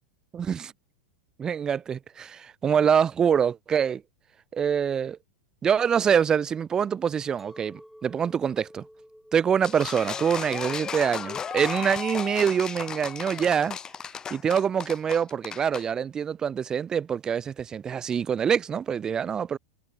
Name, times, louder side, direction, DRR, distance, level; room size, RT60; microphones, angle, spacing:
voice 1, 0.3-0.7 1.4-4.0 4.5-5.2 5.6-8.8 9.3-13.8 14.3-19.6, right 7 dB, 20° right, 0.6 m, -25 dB
Chink clink, 7.4-12.6, equal, ahead, 3.1 m, -54 dB
sound 1, 9.6-15.9, left 7 dB, 20° left, 1.1 m, -35 dB
hypercardioid pair, 100°, 3 cm